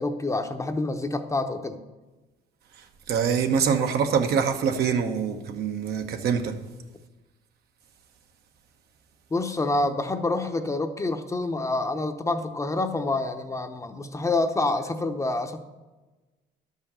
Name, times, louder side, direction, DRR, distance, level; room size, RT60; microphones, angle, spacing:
voice 1, 0.0-1.8 9.3-15.6, left 2 dB, 20° left, 6 dB, 0.8 m, -27 dB
voice 2, 3.1-6.5, right 6 dB, 70° right, 6 dB, 1.2 m, -24 dB
11.5 x 5.5 x 7.0 m, 1.2 s
cardioid pair, 110°, 17 cm